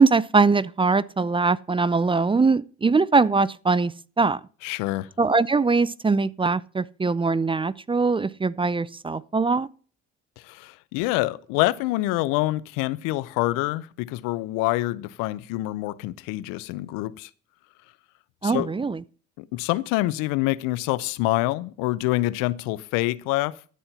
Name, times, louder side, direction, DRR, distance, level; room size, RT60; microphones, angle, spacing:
voice 1, 0.0-4.4 5.2-9.7 18.4-19.0, right 4 dB, 15° right, 0.4 m, -22 dB
voice 2, 4.6-5.1 10.4-17.3 18.4-18.7 19.4-23.8, left 18 dB, 85° left, 0.6 m, -26 dB
12.5 x 4.4 x 6.8 m
supercardioid pair, 65°, 32 cm